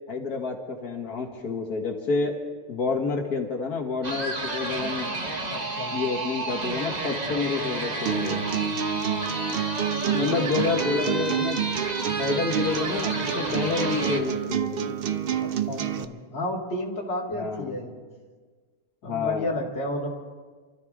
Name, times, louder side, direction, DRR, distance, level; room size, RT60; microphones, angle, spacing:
voice 1, 0.1-2.3 2.7-5.1 5.9-8.5 10.1-11.6 12.2-14.9 17.3-17.8 19.0-19.5, left 4 dB, 90° left, 1 dB, 2.1 m, -29 dB
sound 1, 4.0-14.2, right 2 dB, 30° right, 1.2 m, -31 dB
voice 2, 5.5-6.1 10.0-10.5 15.4-18.0 19.0-20.1, left 1 dB, 45° left, -2 dB, 2.5 m, -32 dB
sound 2, 8.1-16.0, right 8 dB, 55° right, 0.7 m, -28 dB
28.5 x 13.5 x 3.6 m, 1.5 s
omnidirectional pair, 1.6 m